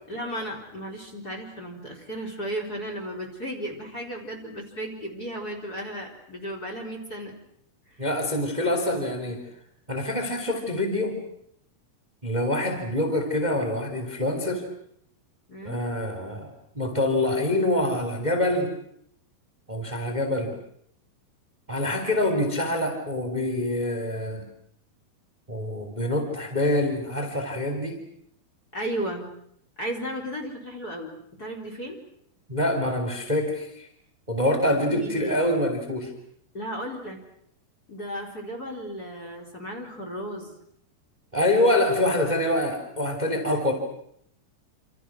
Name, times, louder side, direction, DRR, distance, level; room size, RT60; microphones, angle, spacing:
voice 1, 0.1-7.3 7.9-8.0 15.5-15.8 28.7-29.3 29.8-32.0 34.9-35.4 36.5-37.2 37.9-40.6, equal, 25° left, 3 dB, 4.1 m, -34 dB
voice 2, 8.0-9.4 9.9-11.2 12.2-14.6 15.6-18.7 19.7-20.5 21.7-24.4 25.5-28.0 32.5-33.9 34.3-36.1 41.3-43.7, left 1 dB, 10° right, 4 dB, 3.1 m, -25 dB
28.0 x 27.5 x 6.2 m, 0.71 s
omnidirectional pair, 4.4 m